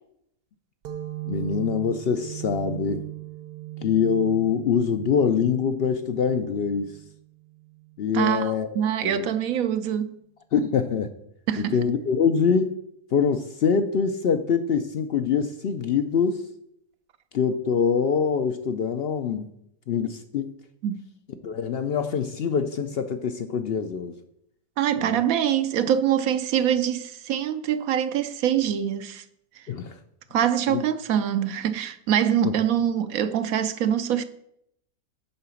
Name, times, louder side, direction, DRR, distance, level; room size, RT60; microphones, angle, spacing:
sound 1, 0.9-8.2, right 15 dB, 90° right, 1.3 m, -38 dB
voice 1, 1.3-3.0 3.8-6.9 8.0-9.3 10.5-11.1 11.6-12.7 13.1-16.4 17.3-19.5 19.9-20.5 21.4-24.1 25.0-25.2 29.7-30.0 30.7-30.8 32.4-32.6, left 6 dB, 65° left, 0.6 m, -24 dB
voice 2, 8.1-10.1 11.5-11.8 20.8-21.0 24.8-29.2 30.3-34.2, right 9 dB, 75° right, 1.0 m, -24 dB
9.7 x 3.8 x 7.0 m
omnidirectional pair, 1.6 m